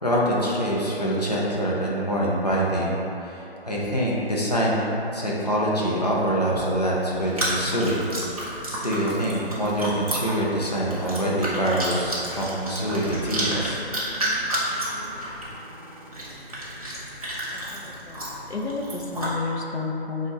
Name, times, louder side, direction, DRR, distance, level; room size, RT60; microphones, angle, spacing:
voice 1, 0.0-8.1 8.7-13.8, equal, 40° left, -5 dB, 0.6 m, -25 dB
Chewing mastication, 7.2-19.3, right 1 dB, 35° right, 0.6 m, -31 dB
voice 2, 17.5-20.3, left 3 dB, 80° left, 1 dB, 0.7 m, -31 dB
4.0 x 2.4 x 4.2 m, 3.0 s
figure-of-eight pair, 175°, 32 cm